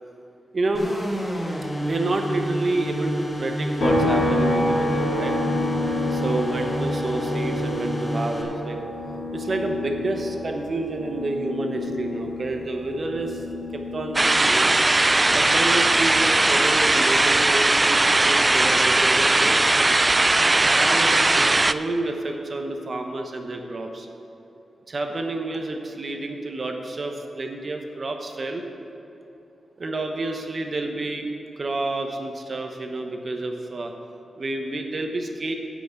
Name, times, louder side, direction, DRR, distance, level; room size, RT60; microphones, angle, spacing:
voice 1, 0.5-0.9 1.8-5.3 6.1-8.8 9.3-13.4 13.7-14.8 15.3-19.6 20.4-24.1 24.9-28.7 29.8-31.3 31.6-33.9 34.4-35.5, right 2 dB, 45° right, 4 dB, 1.0 m, -29 dB
sound 1, 0.7-8.4, equal, 15° left, 1.9 m, -29 dB
sound 2, 3.8-17.3 17.7-19.9, left 1 dB, 65° left, 2.8 m, -29 dB
sound 3, 14.1-21.7, right 2 dB, 25° right, 0.3 m, -19 dB
10.0 x 6.2 x 8.3 m, 2.9 s
cardioid pair, 80°, 0 cm